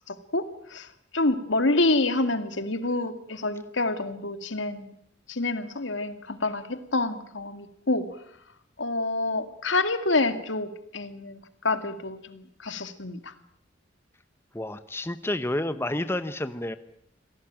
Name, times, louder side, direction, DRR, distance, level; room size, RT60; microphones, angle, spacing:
voice 1, 0.1-0.9 1.1-4.9 5.3-8.1 8.8-11.4 11.6-13.3, left 2 dB, 80° left, 9 dB, 2.2 m, -27 dB
voice 2, 14.5-16.8, left 1 dB, 15° left, 11 dB, 0.9 m, -30 dB
27.0 x 18.0 x 8.9 m, 0.70 s
head